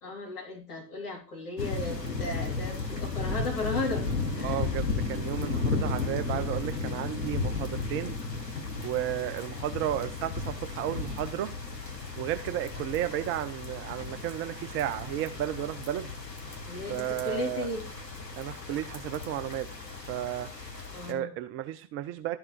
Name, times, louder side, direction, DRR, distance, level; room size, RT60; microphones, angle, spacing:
voice 1, 0.0-4.0 4.4-4.6 16.7-17.9 20.9-21.3, left 2 dB, 65° left, -1 dB, 3.6 m, -35 dB
sound 1, 1.6-21.1, left 4 dB, 90° left, 1.2 m, -34 dB
voice 2, 4.4-8.2 8.8-11.5 12.2-16.1 16.8-17.7 18.4-19.7 20.1-20.5 21.1-22.4, right 12 dB, 25° right, 11 dB, 0.5 m, -33 dB
12.0 x 4.9 x 4.4 m, 0.35 s
figure-of-eight pair, 80°, 48 cm